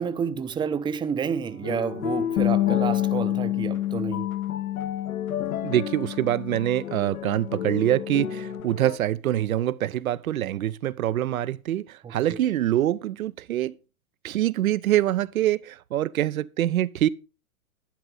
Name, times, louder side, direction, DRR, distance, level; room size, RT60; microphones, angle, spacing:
voice 1, 0.0-4.3 12.0-12.4, right 7 dB, 10° right, 0.6 m, -30 dB
sound 1, 1.4-9.0, left 8 dB, 75° left, 1.2 m, -34 dB
Bass guitar, 2.4-8.6, left 14 dB, 30° left, 0.7 m, -29 dB
voice 2, 5.6-13.8 14.2-17.1, right 12 dB, 75° right, 0.7 m, -25 dB
11.5 x 10.0 x 3.8 m
hypercardioid pair, 105°, 43 cm